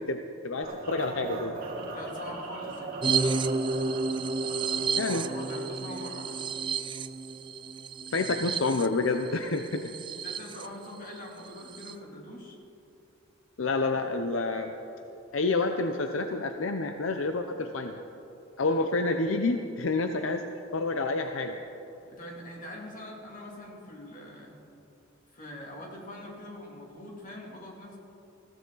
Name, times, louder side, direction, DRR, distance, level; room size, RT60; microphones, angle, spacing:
voice 1, 0.0-1.6 5.0-5.2 8.1-9.8 13.6-14.7 15.3-18.0 18.6-20.5 20.7-21.6, left 3 dB, 70° left, 6 dB, 0.7 m, -28 dB
sound 1, 0.6-6.6, right 2 dB, 45° right, 3.2 m, -40 dB
voice 2, 1.9-3.0 5.0-6.4 10.2-12.6 22.1-24.6 25.3-28.0, left 1 dB, 40° left, -1 dB, 2.8 m, -43 dB
sound 2, 3.0-10.7 11.1-11.2 11.4-11.9, right 4 dB, 25° right, 0.3 m, -31 dB
20.5 x 15.5 x 3.9 m, 3.0 s
head